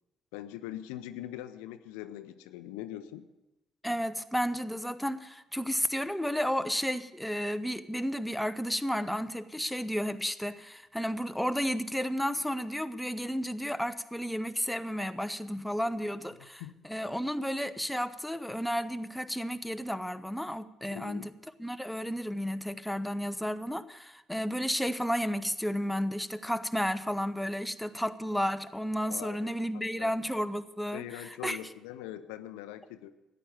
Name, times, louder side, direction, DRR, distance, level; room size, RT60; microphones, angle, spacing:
voice 1, 0.3-3.3 16.6-16.8 20.9-21.3 29.1-30.1 30.9-33.1, left 13 dB, 70° left, 11 dB, 0.6 m, -42 dB
voice 2, 3.8-21.3 21.6-31.6, equal, 5° left, 11 dB, 0.7 m, -32 dB
14.0 x 9.2 x 6.9 m, 0.97 s
figure-of-eight pair, 50°, 0 cm